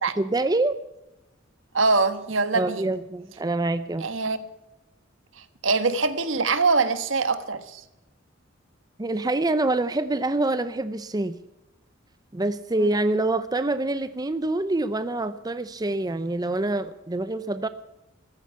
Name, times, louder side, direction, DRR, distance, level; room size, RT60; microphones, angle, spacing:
voice 1, 0.2-0.8 2.5-4.1 9.0-11.4 12.3-17.7, right 2 dB, 20° right, 0.6 m, -26 dB
voice 2, 1.7-2.9 4.0-4.4 5.6-7.8 12.8-12.9, right 4 dB, 75° right, 1.4 m, -23 dB
14.5 x 14.0 x 5.9 m
head